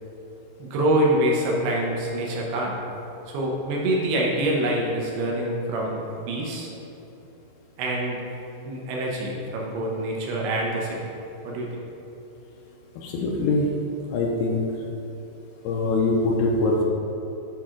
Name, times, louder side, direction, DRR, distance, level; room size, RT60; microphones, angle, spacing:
voice 1, 0.6-2.7 3.3-6.7 7.8-8.2 8.7-11.1 11.4-11.7, right 1 dB, 75° right, -2 dB, 2.8 m, -25 dB
voice 2, 13.0-13.7 14.1-14.6 15.6-16.8, left 3 dB, 80° left, -1 dB, 2.4 m, -23 dB
8.7 x 4.8 x 3.7 m, 3.0 s
omnidirectional pair, 4.9 m